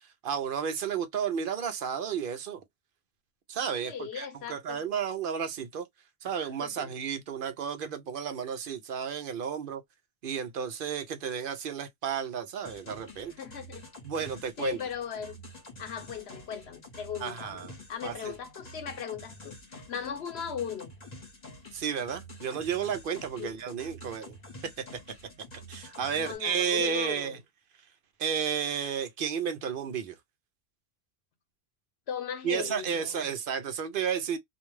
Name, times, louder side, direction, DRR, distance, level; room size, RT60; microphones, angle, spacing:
voice 1, 0.0-2.6 3.5-5.9 6.2-9.8 10.2-13.3 14.0-14.8 17.2-17.7 18.0-18.3 21.7-24.4 24.6-25.2 25.7-27.4 28.2-30.2 32.4-34.4, right 7 dB, 60° right, 0.7 m, -32 dB
voice 2, 3.8-4.8 6.4-6.9 13.4-13.9 14.6-15.4 15.8-17.6 17.9-20.9 23.4-23.5 26.1-27.4 32.1-33.3, left 8 dB, 85° left, 1.0 m, -38 dB
sound 1, 12.6-26.4, left 1 dB, 40° left, 1.2 m, -48 dB
2.5 x 2.2 x 3.0 m
omnidirectional pair, 1.1 m